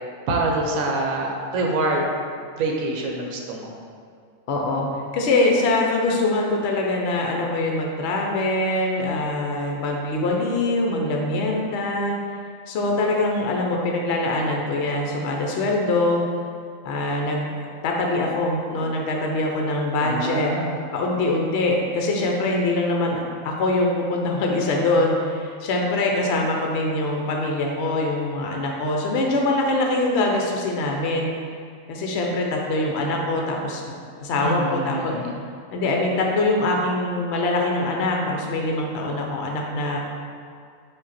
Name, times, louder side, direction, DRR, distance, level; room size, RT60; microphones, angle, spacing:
voice 1, 0.3-2.1 2.6-3.7 20.0-20.8 34.4-35.4, right 2 dB, 75° right, 0 dB, 1.1 m, -25 dB
voice 2, 4.5-4.9 5.1-12.2 12.7-16.3 16.8-17.6 17.8-20.5 20.9-31.3 31.9-34.0 34.2-35.2 35.7-40.0, left 2 dB, 65° left, 0 dB, 0.8 m, -23 dB
5.0 x 2.5 x 4.1 m, 2.2 s
omnidirectional pair, 1.4 m